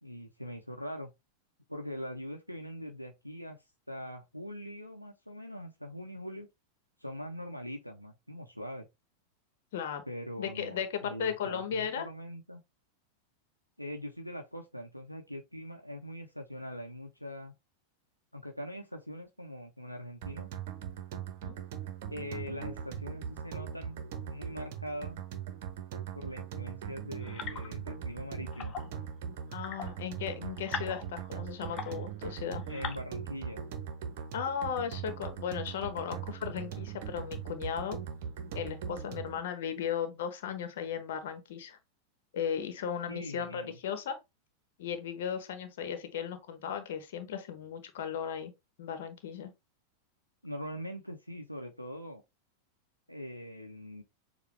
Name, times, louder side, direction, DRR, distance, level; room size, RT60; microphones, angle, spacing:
voice 1, 0.0-1.1 1.7-3.6 3.9-6.5 7.0-8.9 10.1-12.6 13.8-17.5 18.3-20.5 22.1-25.2 26.1-28.8 32.6-33.6 43.1-43.8 50.4-52.2 53.1-54.0, equal, 90° left, 0.7 m, -42 dB
voice 2, 9.7-10.0 10.4-12.1 21.4-21.6 29.5-32.6 34.3-38.0 38.5-41.8 42.3-44.2 44.8-48.5 48.8-49.5, left 8 dB, 55° left, 1.1 m, -36 dB
sound 1, 20.2-39.4, right 8 dB, 50° right, 0.8 m, -40 dB
sound 2, 27.2-27.9 28.5-29.0 29.5-32.2 32.6-33.0, left 6 dB, 30° left, 0.9 m, -42 dB
6.8 x 2.3 x 3.2 m
figure-of-eight pair, 90°, 0 cm